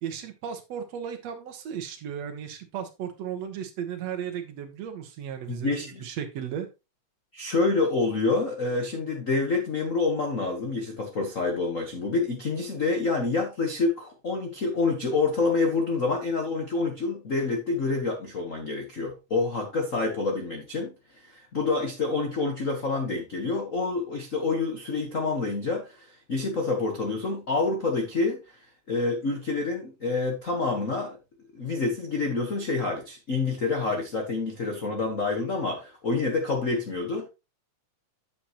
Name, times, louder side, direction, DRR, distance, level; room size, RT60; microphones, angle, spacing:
voice 1, 0.0-6.7, right 8 dB, 65° right, 2.1 m, -35 dB
voice 2, 5.5-6.1 7.3-28.6 28.9-31.2 31.5-37.3, left 3 dB, 70° left, 0.7 m, -27 dB
8.9 x 7.5 x 2.9 m
omnidirectional pair, 3.5 m